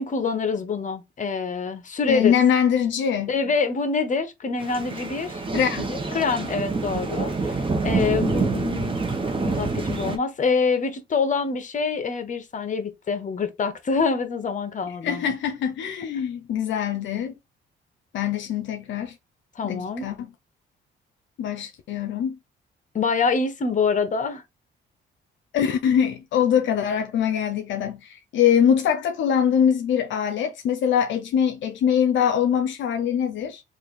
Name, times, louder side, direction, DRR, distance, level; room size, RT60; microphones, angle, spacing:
voice 1, 0.0-2.3 3.3-5.4 5.9-9.0 9.4-15.3 16.0-16.2 19.6-20.1 22.9-24.4, left 4 dB, 40° left, 1.0 m, -26 dB
voice 2, 2.1-3.3 5.5-5.9 15.0-17.3 18.1-19.1 19.6-20.3 21.4-22.4 25.5-33.6, left 8 dB, 70° left, 0.6 m, -23 dB
sound 1, 4.6-10.2, right 3 dB, 25° right, 1.0 m, -27 dB
3.3 x 2.6 x 4.1 m
cardioid pair, 90°, 20 cm